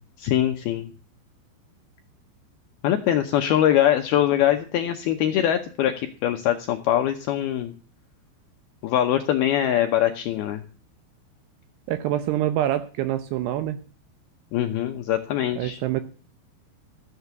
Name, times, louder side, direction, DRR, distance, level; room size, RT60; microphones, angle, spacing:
voice 1, 0.2-0.9 2.8-7.7 8.8-10.6 14.5-15.8, left 11 dB, 80° left, 6 dB, 2.2 m, -23 dB
voice 2, 11.9-13.8 15.6-16.0, right 12 dB, 80° right, 11 dB, 2.5 m, -25 dB
14.0 x 8.3 x 5.8 m, 0.38 s
omnidirectional pair, 5.5 m